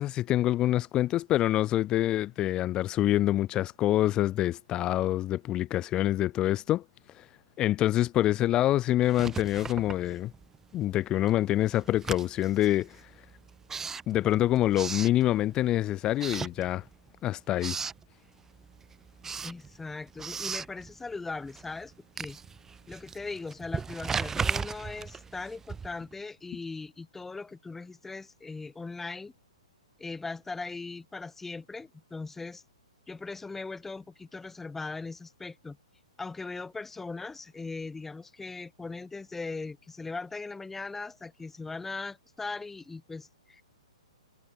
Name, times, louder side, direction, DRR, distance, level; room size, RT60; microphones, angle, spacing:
voice 1, 0.0-6.8 7.2-7.3 7.6-10.3 10.7-12.9 14.1-16.8 17.2-17.8, left 14 dB, 25° left, 0.3 m, -26 dB
Writing, 9.0-10.6 10.9-15.7 16.1-17.1 17.4-18.1 18.5-26.1, right 5 dB, 10° right, 6.5 m, -37 dB
voice 2, 19.4-22.4 22.9-29.3 30.0-32.6 33.1-35.8 36.2-43.6, left 3 dB, 5° left, 2.2 m, -39 dB
figure-of-eight pair, 125°, 4 cm